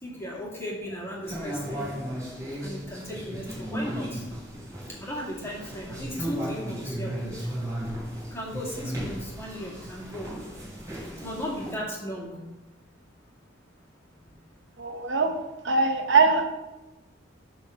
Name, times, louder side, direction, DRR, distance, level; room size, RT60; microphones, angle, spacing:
voice 1, 0.0-2.0 2.5-4.2 5.0-7.5 8.3-10.3 11.2-12.3, equal, 15° left, -5 dB, 2.2 m, -36 dB
sound 1, 1.2-11.7, equal, 20° right, 3.3 m, -35 dB
voice 2, 14.8-15.3 15.6-16.4, right 4 dB, 65° right, 5 dB, 0.8 m, -22 dB
9.6 x 3.9 x 6.4 m, 1.0 s
head